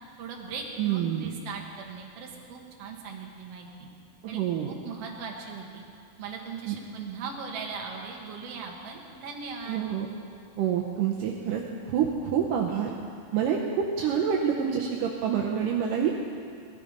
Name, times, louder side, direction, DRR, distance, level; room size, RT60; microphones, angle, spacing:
voice 1, 0.2-3.9 4.3-5.8 6.2-9.9, right 5 dB, 50° right, 0 dB, 2.4 m, -39 dB
voice 2, 0.8-1.3 4.2-4.8 6.7-6.8 9.7-10.1 10.6-11.6 11.9-12.9 13.3-16.2, right 8 dB, 75° right, -1 dB, 2.3 m, -27 dB
18.5 x 13.5 x 5.2 m, 2.4 s
omnidirectional pair, 4.2 m